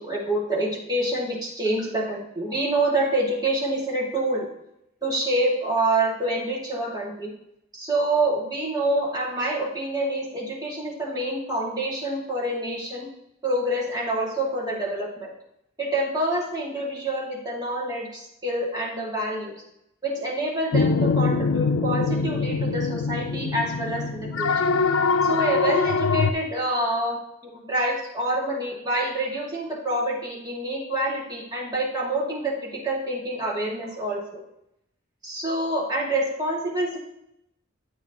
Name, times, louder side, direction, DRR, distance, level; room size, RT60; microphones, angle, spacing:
voice 1, 0.0-4.5 5.0-7.3 7.7-13.1 13.4-15.3 15.8-19.5 20.0-24.5 25.2-34.2 35.2-37.0, right 1 dB, 20° right, -4 dB, 2.2 m, -27 dB
sound 1, 20.7-26.3, left 4 dB, 90° left, 0.5 m, -23 dB
9.1 x 8.7 x 3.0 m, 0.81 s
head